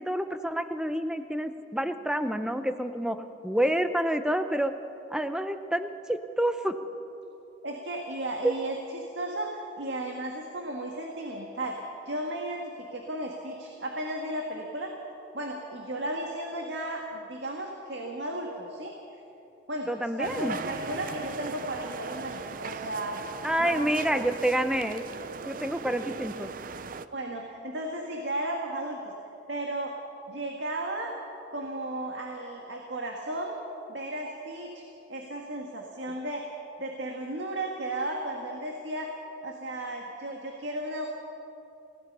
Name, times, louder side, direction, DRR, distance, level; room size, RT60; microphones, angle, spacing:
voice 1, 0.0-3.2 3.4-4.7 5.1-6.7 8.4-8.5 19.9-20.6 23.4-25.0 25.4-26.5, right 1 dB, 5° right, 9 dB, 0.8 m, -28 dB
voice 2, 7.6-11.8 12.1-14.9 15.3-18.9 19.7-19.9 20.2-23.2 23.6-24.2 27.1-29.1 29.5-29.9 30.3-31.1 31.5-33.6 33.9-34.8 35.1-36.5 36.8-39.2 39.4-41.1, right 1 dB, 80° right, 1 dB, 1.9 m, -34 dB
sound 1, 20.2-27.1, right 4 dB, 50° right, 0.6 m, -39 dB
28.0 x 17.5 x 5.5 m, 2.8 s
head